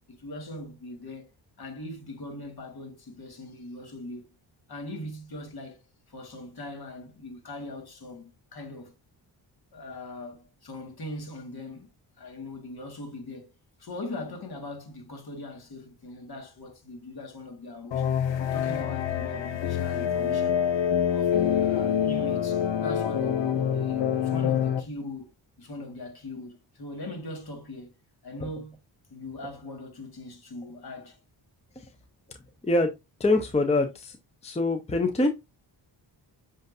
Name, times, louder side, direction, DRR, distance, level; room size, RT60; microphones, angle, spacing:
voice 1, 0.1-1.3 1.6-4.3 4.7-5.8 6.1-8.9 9.7-11.9 12.2-13.5 13.8-18.1 18.4-20.6 21.1-25.3 25.6-27.9 28.2-28.8 29.1-31.2, left 2 dB, 55° left, 1.9 m, -40 dB
sound 1, 17.9-24.8, left 9 dB, 70° left, 0.8 m, -26 dB
voice 2, 33.2-34.1 34.4-35.3, left 2 dB, 15° left, 0.7 m, -24 dB
7.5 x 2.7 x 2.7 m
cardioid pair, 60°, 46 cm